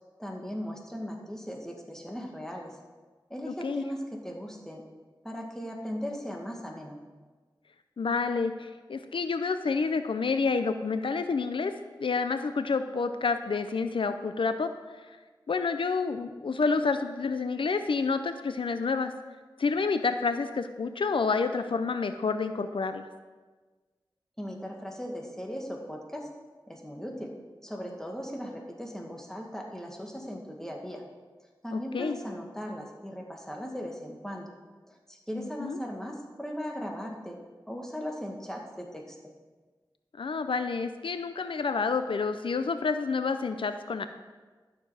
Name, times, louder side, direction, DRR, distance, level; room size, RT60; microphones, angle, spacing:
voice 1, 0.2-2.8 3.3-4.8 5.2-7.0 24.4-26.3 26.7-27.3 27.6-31.0 31.6-34.5 34.9-37.4 37.7-39.2, equal, 5° left, 0 dB, 2.0 m, -38 dB
voice 2, 3.5-3.8 8.0-11.7 12.0-14.7 15.1-15.2 15.5-19.1 19.6-23.1 31.7-32.2 35.3-35.8 40.2-44.1, left 4 dB, 80° left, 9 dB, 0.5 m, -29 dB
12.5 x 6.8 x 4.9 m, 1.4 s
wide cardioid pair, 50°, 9 cm